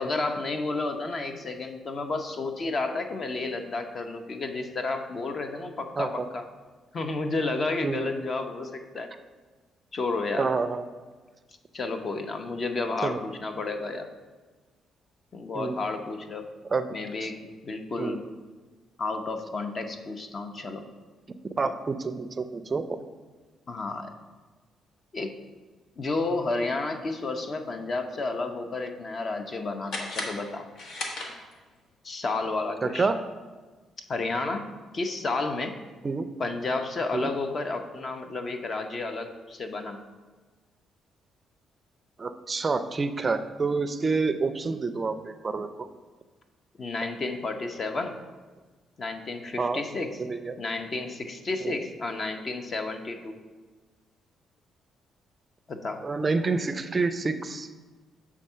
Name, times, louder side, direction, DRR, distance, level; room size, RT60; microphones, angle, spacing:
voice 1, 0.0-6.4 6.9-9.1 9.9-10.5 11.7-14.1 15.3-16.5 16.9-18.3 19.0-20.9 23.7-24.1 25.1-25.3 26.0-30.6 32.0-33.1 34.1-34.7 34.9-35.8 36.4-40.0 46.8-48.2 49.0-50.2 50.6-53.3 55.7-56.1, left 3 dB, 45° left, 6 dB, 0.7 m, -31 dB
voice 2, 6.0-6.3 7.8-8.0 10.4-10.9 13.0-13.2 15.5-15.8 16.7-16.9 17.2-17.3 18.0-18.2 21.6-22.9 32.8-33.2 36.0-36.3 37.1-37.3 42.2-45.9 49.6-49.8 50.2-50.6 51.6-51.8 56.0-57.7, right 4 dB, 30° right, 10 dB, 0.4 m, -28 dB
sound 1, 29.9-31.8, left 2 dB, 70° left, 1.2 m, -36 dB
7.3 x 3.6 x 5.6 m, 1.3 s
cardioid pair, 90°, 0 cm